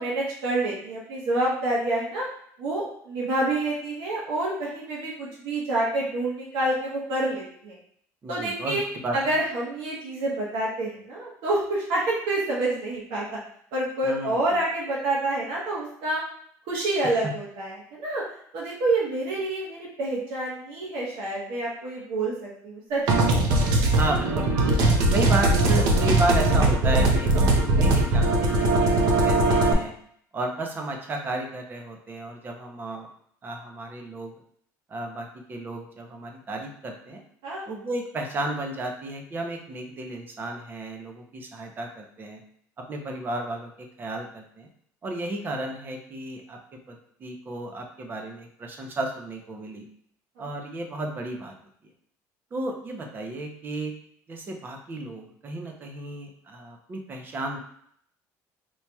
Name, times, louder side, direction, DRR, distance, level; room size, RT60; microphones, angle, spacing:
voice 1, 0.0-2.2 2.6-7.8 8.3-8.8 9.1-13.3 13.7-16.2 16.7-18.2 18.5-23.3 37.4-37.7 50.4-50.5, right 2 dB, 85° right, -5 dB, 1.1 m, -28 dB
voice 2, 8.2-9.3 14.0-14.4 24.0-24.8 25.1-29.9 30.3-33.1 33.4-34.3 34.9-37.2 37.7-42.4 42.8-44.7 45.0-46.6 46.9-49.8 50.4-51.5 52.5-53.9 54.3-57.6, right 2 dB, 30° right, 2 dB, 0.7 m, -33 dB
sound 1, 23.1-29.7, right 2 dB, 65° right, 0.7 m, -20 dB
4.4 x 2.8 x 2.3 m, 0.65 s
cardioid pair, 145°, 7 cm